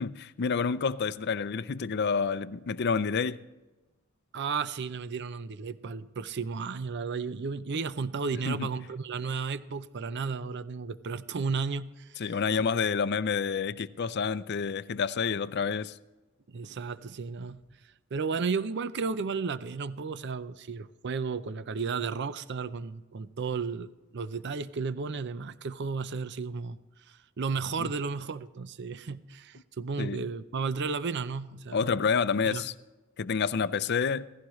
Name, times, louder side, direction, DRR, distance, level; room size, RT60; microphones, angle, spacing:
voice 1, 0.0-3.4 8.5-8.7 12.2-15.9 27.8-27.9 30.0-30.2 31.7-32.7 33.2-34.3, left 5 dB, 55° left, 0.5 m, -28 dB
voice 2, 4.3-12.4 16.5-17.6 18.1-26.8 27.1-32.0 32.4-32.7, right 5 dB, 55° right, 0.5 m, -33 dB
16.5 x 16.0 x 3.1 m
head